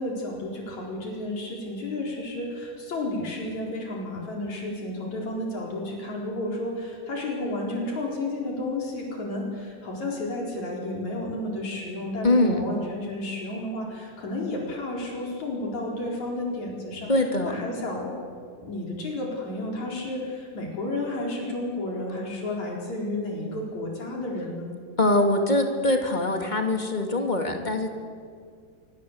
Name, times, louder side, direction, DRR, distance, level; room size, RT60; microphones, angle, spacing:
voice 1, 0.0-17.1 17.4-18.1 18.6-24.7, left 2 dB, 70° left, -1 dB, 5.8 m, -32 dB
voice 2, 12.2-12.6 17.1-17.5 25.0-27.9, left 2 dB, 15° left, 3 dB, 2.7 m, -23 dB
26.5 x 24.0 x 8.2 m, 2.1 s
omnidirectional pair, 3.4 m